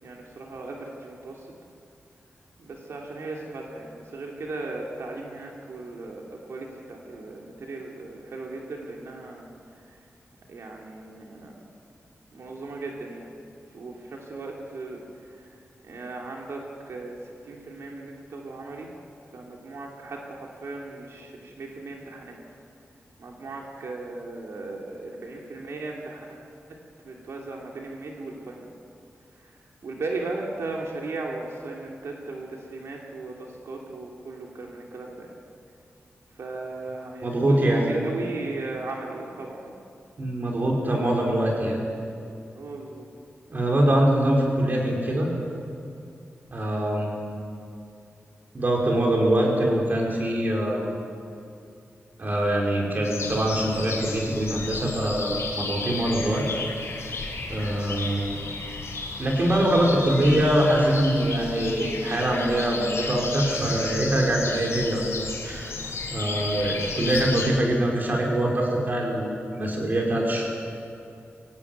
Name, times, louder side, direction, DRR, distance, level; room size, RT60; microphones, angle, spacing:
voice 1, 0.0-1.5 2.6-9.5 9.8-10.0 10.5-11.6 12.3-13.3 13.7-15.5 15.8-18.9 19.3-22.4 23.2-26.8 27.0-28.7 29.4-35.3 36.4-39.7 42.5-43.1 66.3-66.7, right 3 dB, 90° right, -1 dB, 2.9 m, -37 dB
voice 2, 37.2-37.9 40.2-41.8 43.5-45.3 46.5-47.3 48.5-50.9 52.2-56.5 57.5-58.3 59.2-65.7 66.1-70.5, right 1 dB, 40° right, -1 dB, 5.2 m, -23 dB
sound 1, 53.0-67.5, left 3 dB, 75° left, 5.5 m, -33 dB
24.0 x 17.0 x 9.5 m, 2.5 s
wide cardioid pair, 140°, 5 cm